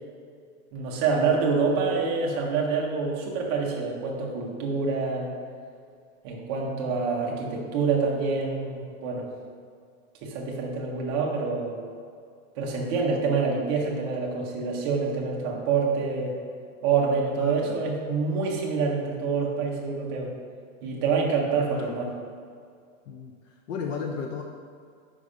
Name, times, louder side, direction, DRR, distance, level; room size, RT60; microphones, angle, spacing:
voice 1, 0.7-5.3 6.2-9.3 10.2-11.8 12.6-16.4 16.8-20.3 20.8-22.1, right 4 dB, 20° right, -2 dB, 0.4 m, -26 dB
voice 2, 6.6-7.0 17.4-17.9 21.6-22.1 23.1-24.4, left 6 dB, 65° left, 2 dB, 0.6 m, -35 dB
5.4 x 5.2 x 4.8 m, 2.2 s
supercardioid pair, 175°, 42 cm